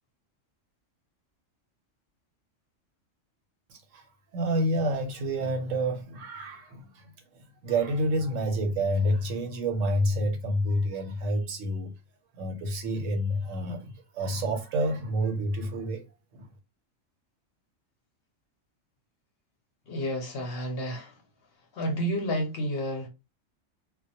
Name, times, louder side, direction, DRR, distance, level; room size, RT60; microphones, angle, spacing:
voice 1, 4.3-7.0 7.6-11.9 12.4-16.0 16.3-16.5, right 1 dB, 80° right, 1.0 m, -28 dB
voice 2, 19.9-21.2 21.7-23.1, equal, 60° left, 0.8 m, -30 dB
2.2 x 2.1 x 2.7 m
omnidirectional pair, 1.3 m